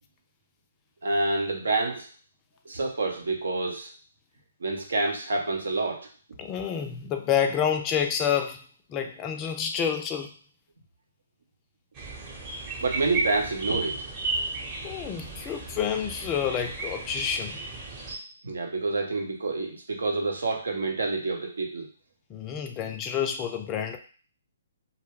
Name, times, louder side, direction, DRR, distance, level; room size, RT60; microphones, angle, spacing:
voice 1, 1.0-2.1 2.7-3.9 4.6-6.1 12.8-14.0 18.4-21.9, right 3 dB, 75° right, 2 dB, 0.7 m, -28 dB
voice 2, 6.4-8.6 8.9-10.3 14.8-17.6 22.3-24.0, left 8 dB, 25° left, 5 dB, 0.3 m, -28 dB
sound 1, 11.9-18.2, right 3 dB, 30° right, 0.8 m, -34 dB
2.3 x 2.1 x 3.3 m, 0.40 s
hypercardioid pair, 135°, 0 cm